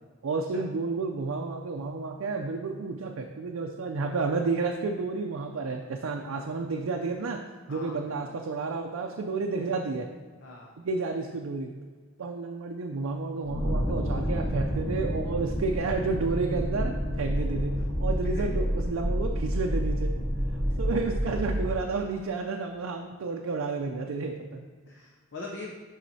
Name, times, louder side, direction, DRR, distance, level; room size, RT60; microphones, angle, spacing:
voice 1, 0.2-7.4 7.7-10.1 10.8-11.7 12.2-17.7 18.0-20.1 20.8-24.7, right 4 dB, 90° right, 2 dB, 0.4 m, -31 dB
voice 2, 6.2-6.5 7.7-8.2 10.4-10.7 24.9-25.7, left 3 dB, 60° left, -1 dB, 0.7 m, -42 dB
sound 1, 13.4-21.7, equal, 20° left, 1.3 m, -29 dB
7.3 x 5.6 x 2.7 m, 1.5 s
head